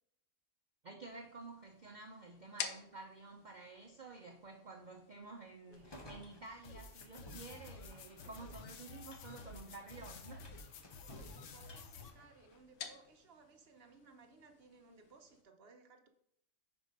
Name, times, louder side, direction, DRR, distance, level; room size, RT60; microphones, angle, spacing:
voice 1, 0.8-10.5, right 3 dB, 90° right, 0.4 m, -51 dB
sound 1, 1.1-15.4, left 7 dB, 85° left, 1.2 m, -53 dB
sound 2, 5.7-12.9, left 1 dB, 30° left, 0.5 m, -58 dB
sound 3, 6.6-12.1, left 3 dB, 60° left, 0.9 m, -51 dB
voice 2, 11.1-16.1, right 4 dB, 55° right, 0.7 m, -62 dB
5.3 x 4.7 x 5.1 m
omnidirectional pair, 1.6 m